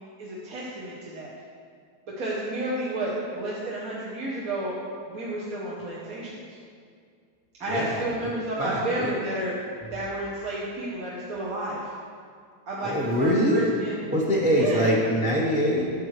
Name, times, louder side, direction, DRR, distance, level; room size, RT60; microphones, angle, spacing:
voice 1, 0.2-1.3 2.2-4.8 5.1-6.4 7.6-9.6 9.9-11.9 12.7-14.0 14.6-14.9, right 1 dB, 60° right, -6 dB, 1.6 m, -31 dB
voice 2, 7.7-8.3 8.6-9.1 12.8-13.7 14.1-15.9, equal, 5° right, -4 dB, 0.8 m, -24 dB
12.5 x 7.7 x 3.3 m, 2.2 s
omnidirectional pair, 1.8 m